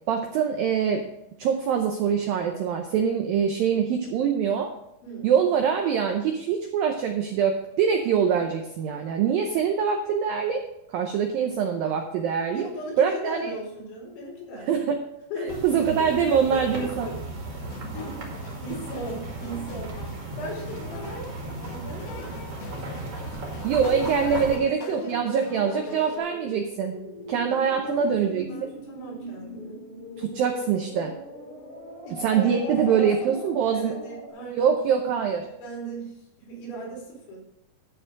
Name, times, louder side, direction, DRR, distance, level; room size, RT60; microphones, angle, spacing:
voice 1, 0.1-1.0 1.4-4.7 5.2-10.6 10.9-12.6 13.0-13.5 14.7-15.0 15.6-17.1 23.6-27.0 27.3-28.7 30.2-31.2 32.2-33.9 34.6-35.5, right 7 dB, 85° right, 4 dB, 2.0 m, -24 dB
voice 2, 12.5-14.9 15.3-15.7 16.0-17.2 17.5-18.3 18.6-22.6 24.0-25.1 25.5-26.0 27.5-29.8 32.1-34.8 35.6-37.4, right 1 dB, 85° left, -3 dB, 5.6 m, -38 dB
sound 1, 15.5-24.6, right 2 dB, 40° right, 2.4 m, -36 dB
sound 2, 17.6-26.2, left 5 dB, 70° left, 2.5 m, -43 dB
sound 3, 24.8-34.3, left 1 dB, 40° left, 1.5 m, -41 dB
13.0 x 4.5 x 6.4 m, 0.82 s
omnidirectional pair, 5.2 m